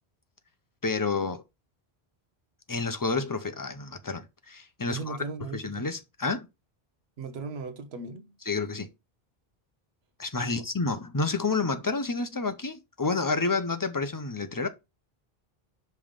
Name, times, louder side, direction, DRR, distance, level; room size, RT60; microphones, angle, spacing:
voice 1, 0.8-1.4 2.7-5.2 5.5-6.5 8.5-8.9 10.2-14.7, left 3 dB, 25° left, 0.5 m, -29 dB
voice 2, 4.9-5.9 7.2-8.4 10.4-10.7, right 4 dB, 90° right, 1.1 m, -38 dB
5.3 x 3.5 x 5.0 m
omnidirectional pair, 1.0 m